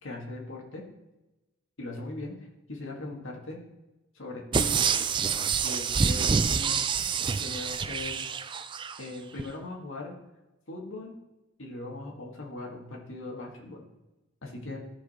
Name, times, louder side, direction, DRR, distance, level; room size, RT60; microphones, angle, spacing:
voice 1, 0.0-0.8 1.8-2.4 2.7-3.6 4.1-4.8 5.6-6.8 7.4-8.2 9.0-10.1 10.7-11.2 11.6-13.8 14.4-14.8, left 2 dB, 65° left, 0 dB, 1.8 m, -39 dB
sound 1, 4.5-9.0 9.4-9.5, right 6 dB, 20° right, 0.3 m, -27 dB
14.0 x 4.9 x 4.3 m, 1.0 s
head